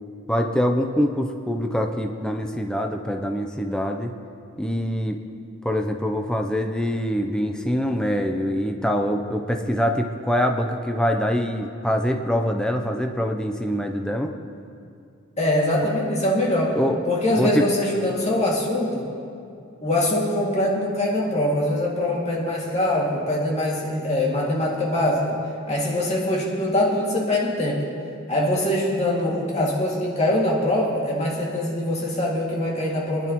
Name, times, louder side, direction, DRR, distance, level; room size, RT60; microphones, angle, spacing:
voice 1, 0.3-4.1 4.6-5.2 5.6-14.3 16.8-17.0 17.4-17.7, equal, 5° left, 3 dB, 0.6 m, -24 dB
voice 2, 15.4-16.8 17.1-19.1 19.8-25.4 25.7-27.8 28.3-33.3, left 1 dB, 30° left, -4 dB, 2.3 m, -23 dB
25.0 x 10.5 x 3.0 m, 2.5 s
head